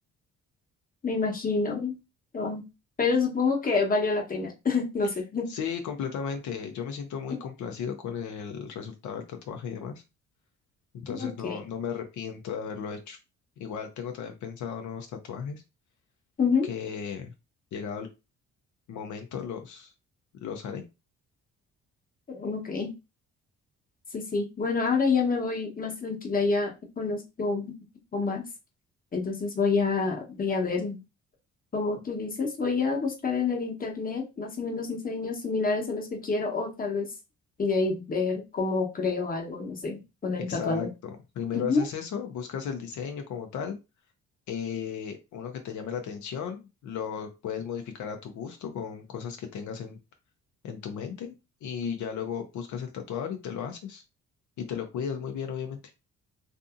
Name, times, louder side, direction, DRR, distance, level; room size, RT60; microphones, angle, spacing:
voice 1, 1.0-1.9 2.3-2.6 3.0-5.5 11.1-11.6 16.4-16.7 22.3-22.9 24.1-27.8 28.1-28.5 29.1-31.0 31.7-37.1 37.6-40.9 41.5-41.8, left 4 dB, 30° left, 1 dB, 0.9 m, -28 dB
voice 2, 5.5-10.0 11.0-13.2 13.6-15.6 16.7-17.3 17.7-18.1 18.9-19.9 20.4-20.8 40.3-43.8 44.5-50.0 50.6-51.3 51.6-54.0 54.6-55.8, left 7 dB, 75° left, 5 dB, 0.6 m, -35 dB
2.6 x 2.6 x 2.4 m, 0.26 s
cardioid pair, 90°, 30 cm